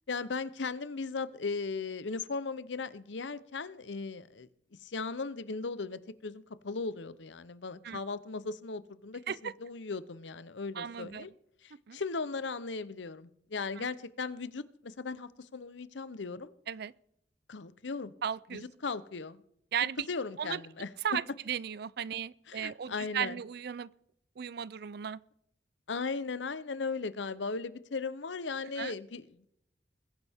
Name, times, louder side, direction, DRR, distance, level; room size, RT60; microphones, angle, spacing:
voice 1, 0.1-4.5 4.8-11.3 11.6-16.5 17.5-18.1 18.5-19.4 20.1-20.9 22.5-23.4 25.9-29.5, left 4 dB, 80° left, 0.8 m, -37 dB
voice 2, 10.8-11.3 11.9-12.0 13.8-13.9 16.7-16.9 18.2-18.6 19.7-20.1 20.4-20.6 21.0-23.9 24.4-25.2 28.8-28.9, right 8 dB, 60° right, 0.4 m, -35 dB
21.0 x 10.5 x 3.6 m
head